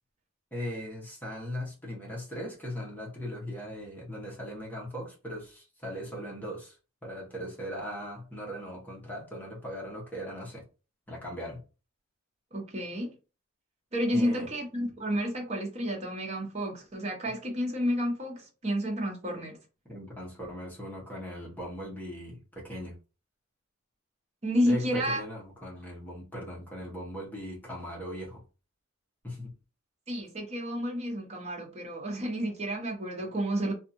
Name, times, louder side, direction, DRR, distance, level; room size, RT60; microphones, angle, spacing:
voice 1, 0.5-10.6 11.1-11.6 14.1-14.5 19.9-23.0 24.6-28.4 29.2-29.5, equal, 10° left, 0.9 m, -39 dB
voice 2, 12.5-13.1 13.9-19.6 24.4-25.2 30.1-33.7, equal, 30° right, 0.8 m, -30 dB
2.7 x 2.4 x 2.6 m
head